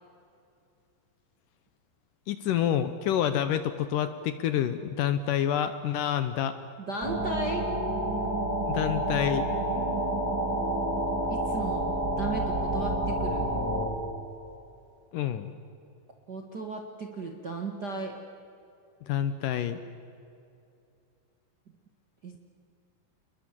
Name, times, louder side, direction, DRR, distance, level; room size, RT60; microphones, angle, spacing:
voice 1, 2.3-6.6 8.6-9.5 15.1-15.5 19.1-19.8, left 10 dB, 75° left, 11 dB, 2.1 m, -28 dB
voice 2, 6.8-7.7 11.3-13.5 16.3-18.2 22.2-22.4, right 3 dB, 50° right, 1 dB, 1.2 m, -35 dB
sound 1, 7.0-13.9, right 1 dB, 25° right, 4.2 m, -29 dB
29.0 x 21.0 x 7.4 m, 2.6 s
omnidirectional pair, 4.5 m